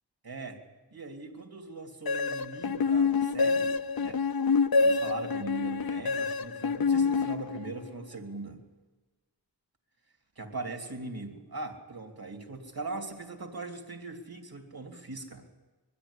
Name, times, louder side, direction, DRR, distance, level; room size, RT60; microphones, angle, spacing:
voice 1, 0.2-0.6 0.9-4.2 4.8-8.6 10.4-15.5, right 3 dB, 55° right, 4 dB, 3.0 m, -40 dB
sound 1, 2.1-7.9, left 4 dB, 55° left, 0.7 m, -27 dB
22.5 x 13.0 x 9.9 m, 1.2 s
wide cardioid pair, 55°, 43 cm